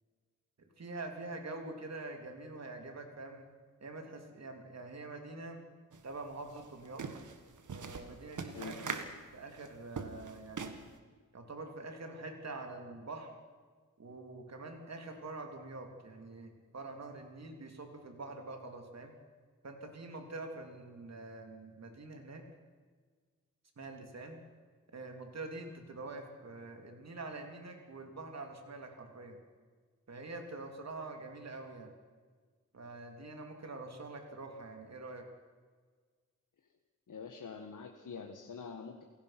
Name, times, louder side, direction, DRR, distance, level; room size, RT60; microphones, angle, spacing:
voice 1, 0.8-3.5 3.8-5.6 6.0-7.1 7.7-8.9 9.3-10.7 11.3-13.3 14.0-19.1 19.6-22.4 23.8-24.4 24.9-29.4 30.1-31.9 32.7-35.3, right 2 dB, 55° right, 4 dB, 3.4 m, -45 dB
sound 1, 5.9-6.0 6.3-11.0, right 5 dB, 75° right, 1.9 m, -42 dB
voice 2, 8.5-9.0 37.1-39.0, left 5 dB, 80° left, 3 dB, 1.6 m, -45 dB
28.0 x 17.0 x 6.1 m, 1.5 s
wide cardioid pair, 100°, 31 cm